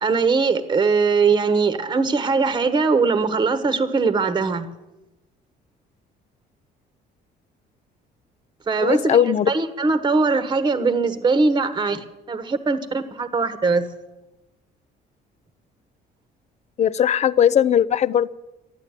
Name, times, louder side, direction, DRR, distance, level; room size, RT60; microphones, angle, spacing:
voice 1, 0.0-4.7 8.7-13.9, right 4 dB, 25° right, 11 dB, 1.2 m, -21 dB
voice 2, 8.8-9.5 16.8-18.3, left 9 dB, 40° left, 18 dB, 0.6 m, -18 dB
13.0 x 10.0 x 8.9 m, 0.99 s
cardioid pair, 110°, 17 cm